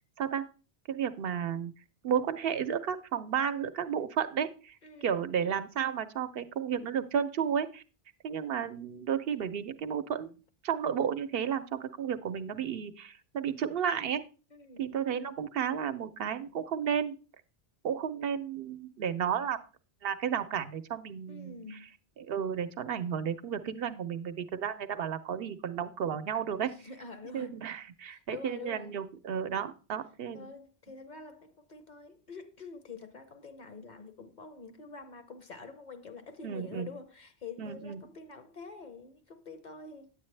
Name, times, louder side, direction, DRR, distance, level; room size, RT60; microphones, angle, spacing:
voice 1, 0.9-1.7 2.0-4.7 5.0-7.8 8.2-10.3 10.6-14.2 14.8-17.1 17.8-19.6 20.0-21.6 22.2-26.7 27.3-30.5 36.4-36.9 37.6-38.0, right 8 dB, 70° right, 0.8 m, -32 dB
voice 2, 4.8-5.1 14.5-14.8 21.3-21.9 26.6-27.6 28.1-29.0 30.3-40.1, left 4 dB, 50° left, 0.8 m, -47 dB
9.4 x 8.3 x 3.2 m
omnidirectional pair, 1.1 m